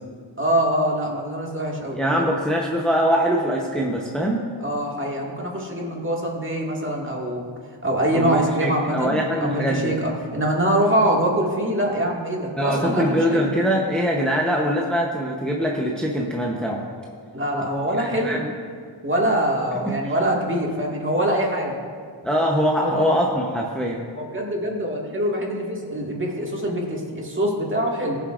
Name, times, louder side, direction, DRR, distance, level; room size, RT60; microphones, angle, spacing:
voice 1, 0.4-2.3 4.6-7.4 7.8-13.5 17.3-18.4 19.0-21.8 22.8-23.0 24.1-28.2, right 1 dB, 25° right, -2 dB, 2.0 m, -24 dB
voice 2, 1.9-4.4 8.1-10.0 12.6-16.8 18.0-18.5 19.9-20.0 22.2-24.0, equal, ahead, -2 dB, 0.9 m, -23 dB
20.0 x 6.9 x 2.5 m, 2.1 s
wide cardioid pair, 70°, 47 cm